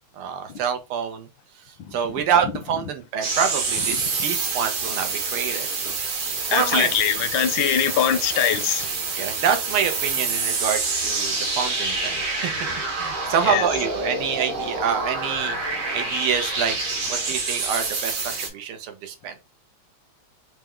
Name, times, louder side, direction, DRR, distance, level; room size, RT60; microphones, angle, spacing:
voice 1, 0.1-1.3 1.9-6.0 6.5-6.9 9.2-15.6 15.9-16.8 17.1-19.3, right 8 dB, 90° right, 1.6 m, -26 dB
sound 1, 3.2-18.5, right 3 dB, 70° right, 1.9 m, -27 dB
voice 2, 6.5-8.9 13.4-13.7, left 10 dB, 75° left, 1.3 m, -22 dB
4.5 x 2.1 x 3.5 m
omnidirectional pair, 2.3 m